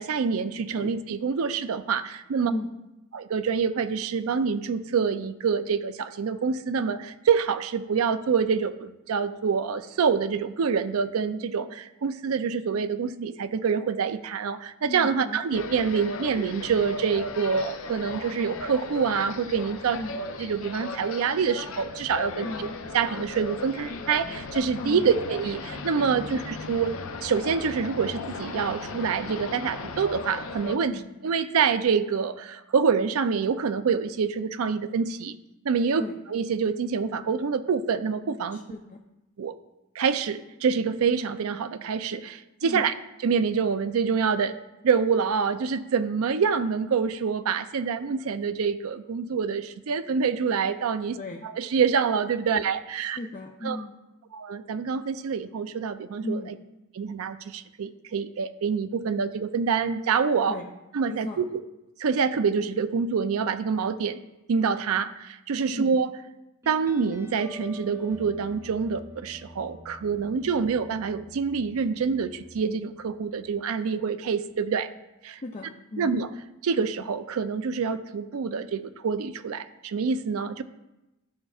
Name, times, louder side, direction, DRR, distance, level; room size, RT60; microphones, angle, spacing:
voice 1, 0.0-2.5 3.1-20.0 20.4-22.7 22.9-26.9 27.2-35.4 35.6-36.0 36.3-38.6 39.4-39.6 40.0-42.9 43.2-44.6 44.8-51.2 51.4-53.2 53.6-53.8 54.3-56.5 56.9-60.6 60.9-61.6 62.0-64.2 64.5-66.1 66.7-74.9 75.2-75.4 76.0-76.3 76.6-80.6, right 6 dB, 80° right, 11 dB, 0.4 m, -26 dB
voice 2, 14.9-15.6 19.9-20.2 22.4-22.8 24.8-25.1 26.1-26.4 30.9-31.1 36.0-36.1 38.5-39.0 42.6-42.9 51.1-51.5 53.0-54.0 56.2-56.6 60.5-60.7 61.1-61.4 65.7-65.9 70.4-70.5 75.4-76.2, left 2 dB, 35° left, 1 dB, 0.5 m, -36 dB
sound 1, 15.5-30.8, left 3 dB, 75° left, 0.6 m, -37 dB
sound 2, 66.6-73.8, left 1 dB, 15° right, 0.7 m, -48 dB
13.0 x 5.4 x 2.4 m, 0.96 s
head